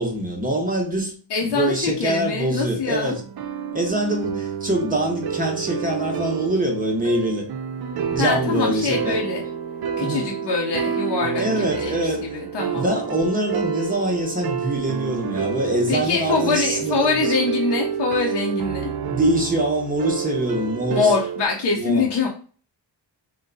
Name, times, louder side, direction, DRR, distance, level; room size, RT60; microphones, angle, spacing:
voice 1, 0.0-1.1 1.4-3.2 3.7-7.5 8.1-9.2 10.0-10.3 11.3-12.3 12.7-17.3 19.1-21.1 21.8-22.1, right 1 dB, 20° right, 0.9 m, -24 dB
voice 2, 1.3-3.2 8.1-9.4 10.0-12.9 15.9-18.9 20.9-22.3, left 4 dB, 65° left, 0.8 m, -24 dB
sound 1, 3.1-21.5, right 7 dB, 60° right, 0.6 m, -29 dB
3.8 x 2.2 x 3.8 m
wide cardioid pair, 110°, 45 cm